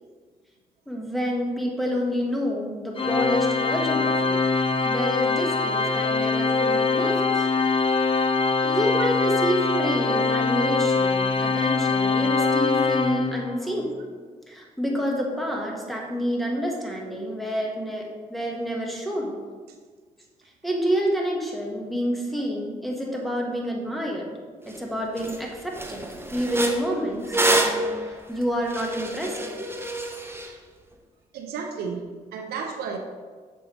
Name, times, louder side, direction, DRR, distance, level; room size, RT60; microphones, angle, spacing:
voice 1, 0.9-4.5 4.8-7.5 8.6-13.9 14.5-19.3 20.6-24.3 24.7-29.7, equal, ahead, -1 dB, 1.6 m, -28 dB
voice 2, 1.9-2.2 9.7-9.9 13.4-13.5 16.5-16.7 19.7-19.8 26.7-26.8 31.3-33.0, right 5 dB, 85° right, 4 dB, 0.6 m, -34 dB
Organ, 3.0-13.7, left 4 dB, 35° left, 0.5 m, -23 dB
sound 1, 24.7-24.8 25.2-25.4 25.7-30.5, right 2 dB, 15° right, 0.9 m, -27 dB
6.8 x 5.2 x 3.3 m, 1.5 s
supercardioid pair, 55°, 16 cm